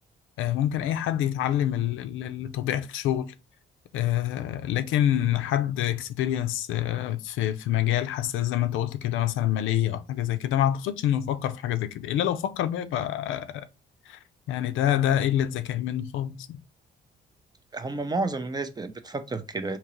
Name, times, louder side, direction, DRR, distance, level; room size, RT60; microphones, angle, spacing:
voice 1, 0.4-3.3 3.9-13.7 14.1-14.2 14.5-16.6, left 11 dB, 85° left, 0.4 m, -26 dB
voice 2, 17.7-19.8, right 3 dB, 20° right, 0.5 m, -31 dB
3.7 x 2.9 x 3.0 m
cardioid pair, 90°, 20 cm